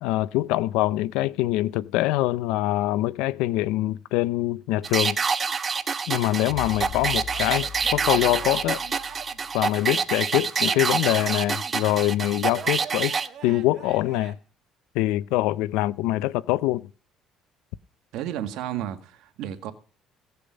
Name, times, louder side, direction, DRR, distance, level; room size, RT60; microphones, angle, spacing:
voice 1, 0.0-5.2 6.1-8.8 9.5-13.1 13.4-14.4 14.9-16.9, left 16 dB, 90° left, 0.5 m, -24 dB
sound 1, 4.8-13.3, right 5 dB, 30° right, 0.9 m, -26 dB
sound 2, 6.5-9.9, left 9 dB, 70° left, 0.8 m, -40 dB
Male speech man speaking / Yell / Laughter, 7.3-9.4 10.1-11.8 12.5-14.3, right 10 dB, 55° right, 1.7 m, -43 dB
voice 2, 18.1-19.7, right 11 dB, 75° right, 1.7 m, -32 dB
17.0 x 6.9 x 5.2 m
cardioid pair, 110°, 0 cm